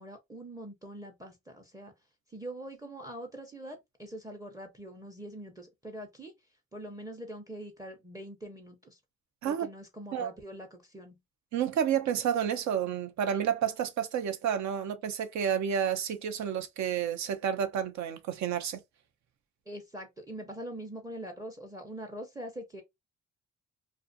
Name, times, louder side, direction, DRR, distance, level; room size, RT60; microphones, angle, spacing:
voice 1, 0.0-1.9 2.3-6.3 6.7-9.0 9.4-11.2 19.7-22.8, right 1 dB, 10° right, 0.6 m, -43 dB
voice 2, 11.5-18.8, right 8 dB, 70° right, 0.7 m, -30 dB
2.5 x 2.4 x 2.5 m
cardioid pair, 90°, 30 cm